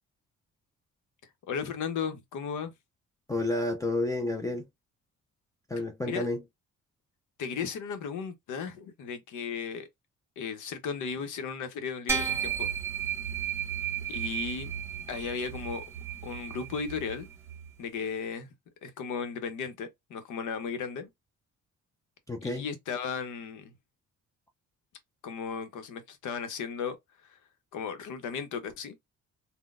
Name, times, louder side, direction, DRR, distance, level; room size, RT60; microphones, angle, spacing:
voice 1, 1.5-2.7 6.0-6.3 7.4-9.9 10.4-12.7 14.1-14.7 15.1-15.8 16.2-17.3 17.8-18.5 18.8-21.1 22.4-23.7 25.2-27.0 27.3-27.4 27.7-29.0, left 6 dB, 80° left, 0.9 m, -35 dB
voice 2, 3.3-4.7 5.7-6.4 22.3-22.7, left 2 dB, 10° left, 0.5 m, -30 dB
sound 1, 12.1-17.7, right 8 dB, 10° right, 1.2 m, -34 dB
3.7 x 2.2 x 2.4 m
cardioid pair, 90°, 30 cm